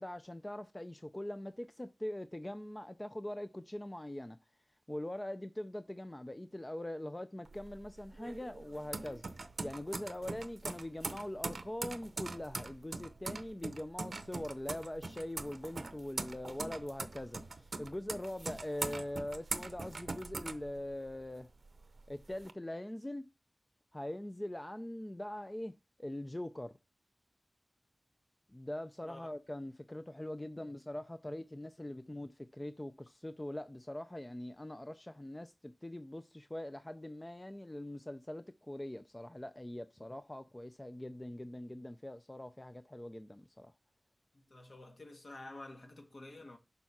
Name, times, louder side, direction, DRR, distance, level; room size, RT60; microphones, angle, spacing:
voice 1, 0.0-4.4 4.9-9.2 9.6-21.5 22.1-23.2 23.9-25.7 26.0-26.7 28.5-43.7, left 1 dB, 20° left, 0.5 m, -42 dB
sound 1, 7.5-21.3 21.7-22.5, right 3 dB, 65° right, 0.7 m, -42 dB
voice 2, 44.3-46.6, left 2 dB, 60° left, 1.6 m, -50 dB
6.8 x 4.8 x 5.9 m
wide cardioid pair, 85°, 0 cm